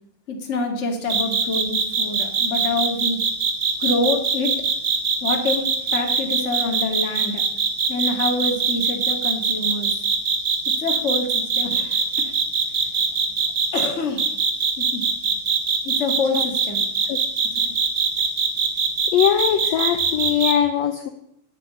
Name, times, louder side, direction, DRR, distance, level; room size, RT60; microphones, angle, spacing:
voice 1, 0.3-3.2 3.8-4.5 5.2-5.6 5.9-7.4 7.9-10.0 10.8-12.3 12.8-13.2 13.7-14.5 14.8-15.1 15.8-16.8, left 3 dB, 25° left, 3 dB, 1.8 m, -26 dB
sound 1, 1.1-13.9 14.2-20.5, right 6 dB, 50° right, 1.5 m, -21 dB
voice 2, 19.1-21.1, left 10 dB, 75° left, 8 dB, 1.6 m, -21 dB
10.5 x 7.6 x 8.9 m, 0.74 s
omnidirectional pair, 3.9 m